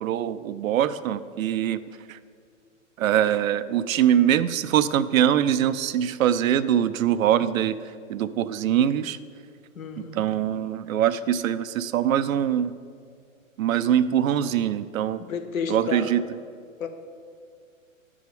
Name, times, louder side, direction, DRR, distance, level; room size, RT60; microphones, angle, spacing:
voice 1, 0.0-1.8 2.1-2.2 3.0-7.8 8.1-9.2 10.0-12.7 13.6-15.2 15.7-16.2, right 10 dB, 75° right, 14 dB, 0.6 m, -23 dB
voice 2, 9.8-10.2 15.2-16.2 16.8-16.9, left 5 dB, 80° left, 7 dB, 1.0 m, -31 dB
9.3 x 4.9 x 6.9 m, 2.2 s
hypercardioid pair, 135°, 41 cm